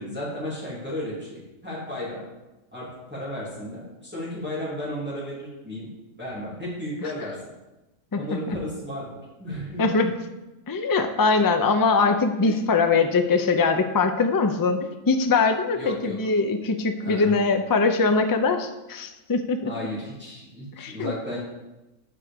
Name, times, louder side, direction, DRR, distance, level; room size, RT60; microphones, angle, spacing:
voice 1, 0.0-2.2 2.7-5.9 6.2-7.4 8.1-9.1 9.4-10.0 12.4-12.6 15.8-16.2 17.0-17.3 19.6-21.4, left 1 dB, 10° right, -8 dB, 2.6 m, -33 dB
voice 2, 8.1-8.6 9.8-10.1 10.7-14.8 15.1-19.7 20.8-21.1, left 4 dB, 30° left, 6 dB, 0.4 m, -22 dB
8.3 x 4.9 x 6.7 m, 1.0 s
omnidirectional pair, 1.4 m